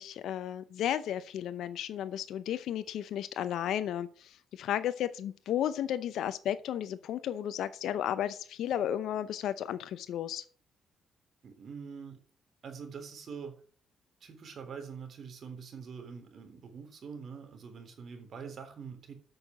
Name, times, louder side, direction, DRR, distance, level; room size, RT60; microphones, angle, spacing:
voice 1, 0.0-10.4, left 10 dB, 80° left, 13 dB, 0.6 m, -33 dB
voice 2, 11.4-12.2 12.6-13.6 14.2-19.2, right 6 dB, 55° right, 5 dB, 3.5 m, -44 dB
8.7 x 6.5 x 7.3 m, 0.44 s
cardioid pair, 90°, 0 cm